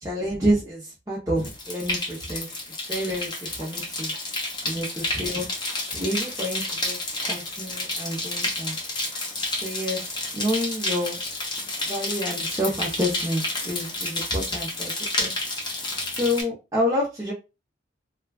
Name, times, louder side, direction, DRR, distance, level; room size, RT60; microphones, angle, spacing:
voice 1, 0.0-2.5 2.9-4.1 4.6-5.5 5.9-8.8 9.6-10.0 10.3-11.2 11.9-14.9 15.2-15.3 16.1-17.3, equal, 15° right, -6 dB, 0.7 m, -28 dB
sound 1, 1.4-16.4, left 2 dB, 25° left, 0.7 m, -30 dB
3.3 x 2.3 x 2.3 m, 0.28 s
head